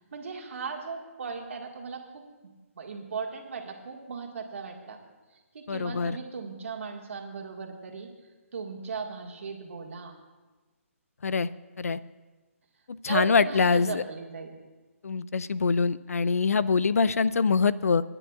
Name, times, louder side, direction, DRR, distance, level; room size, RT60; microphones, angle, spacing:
voice 1, 0.1-5.0 5.5-8.1 8.5-10.1 13.1-14.5, right 5 dB, 60° right, 2 dB, 1.8 m, -37 dB
voice 2, 5.7-6.2 11.2-11.5 11.8-12.0 12.9-14.0 15.0-18.0, left 5 dB, 85° left, 17 dB, 0.4 m, -24 dB
26.0 x 9.9 x 2.4 m, 1.3 s
hypercardioid pair, 155°, 8 cm